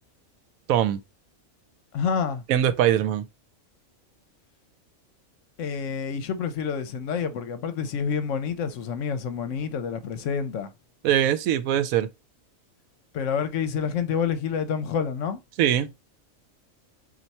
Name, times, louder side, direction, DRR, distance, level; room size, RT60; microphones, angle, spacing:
voice 1, 0.7-1.0 2.5-3.2 11.0-12.1 15.6-15.9, right 11 dB, 90° right, 1.0 m, -22 dB
voice 2, 1.9-2.4 5.6-10.7 13.1-15.4, left 6 dB, 70° left, 0.9 m, -28 dB
4.4 x 2.5 x 4.1 m
omnidirectional pair, 1.4 m